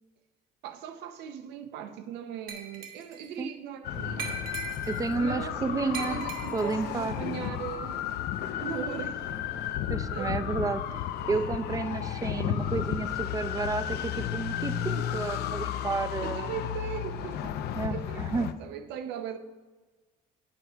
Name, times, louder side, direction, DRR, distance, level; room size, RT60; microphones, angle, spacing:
voice 1, 0.6-4.4 5.2-8.0 8.6-9.3 10.1-10.6 16.2-17.4 17.9-19.4, right 8 dB, 90° right, 0.6 m, -39 dB
Glass, 2.5-3.3 4.2-5.1 5.9-6.8, right 6 dB, 60° right, 1.2 m, -40 dB
sound 1, 3.8-18.5, left 10 dB, 75° left, 0.5 m, -33 dB
Musical instrument, 3.9-12.4, left 5 dB, 50° left, 1.1 m, -47 dB
voice 2, 4.9-6.2 6.5-7.2 9.9-10.8 11.3-16.5 17.7-18.5, right 4 dB, 20° right, 0.4 m, -31 dB
8.7 x 4.4 x 5.6 m
cardioid pair, 110°, 17 cm